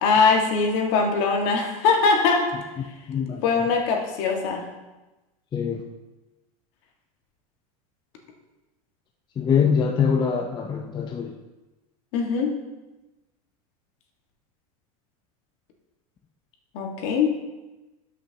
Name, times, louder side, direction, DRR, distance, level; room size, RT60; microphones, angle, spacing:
voice 1, 0.0-2.5 3.4-4.6 12.1-12.5 16.7-17.3, left 4 dB, 60° left, 1 dB, 1.7 m, -21 dB
voice 2, 3.1-3.4 5.5-5.8 9.4-11.3, left 6 dB, 25° left, 3 dB, 0.6 m, -23 dB
12.5 x 5.9 x 2.9 m, 1.1 s
hypercardioid pair, 110°, 19 cm